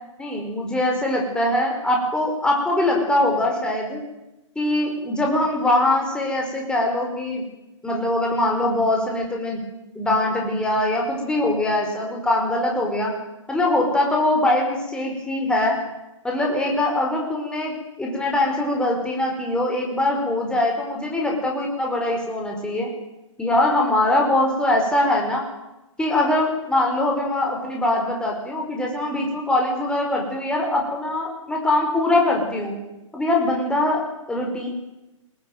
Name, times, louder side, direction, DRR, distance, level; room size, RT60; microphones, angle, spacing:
voice 1, 0.2-4.0 4.5-7.4 7.8-9.6 9.9-13.1 13.5-15.8 16.2-17.7 18.0-22.9 23.4-25.5 26.0-32.7 33.1-34.7, left 1 dB, 5° left, -1 dB, 5.0 m, -22 dB
22.5 x 18.5 x 9.3 m, 0.99 s
figure-of-eight pair, 125°, 17 cm